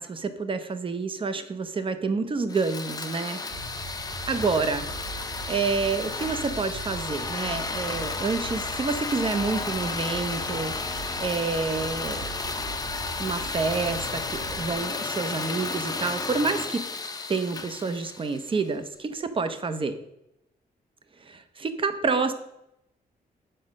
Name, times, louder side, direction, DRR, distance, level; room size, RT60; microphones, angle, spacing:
voice 1, 0.0-3.4 4.3-4.8 5.5-10.7 11.2-12.3 13.2-16.8 17.3-20.0 21.2-22.3, right 4 dB, 35° right, 10 dB, 0.8 m, -28 dB
sound 1, 2.5-18.7, left 3 dB, 25° left, 0.8 m, -33 dB
sound 2, 3.5-14.7, right 3 dB, 70° right, 3.4 m, -41 dB
7.8 x 5.0 x 6.4 m, 0.83 s
wide cardioid pair, 125°, 16 cm